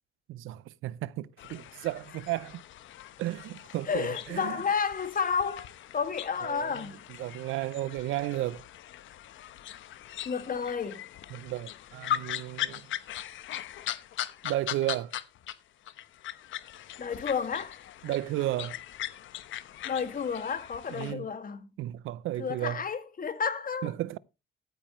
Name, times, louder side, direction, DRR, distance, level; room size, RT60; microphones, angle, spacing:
voice 1, 0.3-2.6 3.2-4.6 6.4-6.9 7.2-8.6 11.3-12.9 14.4-15.1 18.0-18.8 20.9-21.3 21.8-22.8 23.8-24.2, right 15 dB, 85° right, 0.6 m, -33 dB
sound 1, 1.4-15.5 15.8-21.1, left 11 dB, 75° left, 1.0 m, -40 dB
voice 2, 3.9-5.7 5.9-7.0 10.3-11.0 17.0-17.8 19.8-21.7 22.4-23.9, left 6 dB, 45° left, 2.1 m, -31 dB
14.0 x 9.0 x 3.1 m
cardioid pair, 90°, 20 cm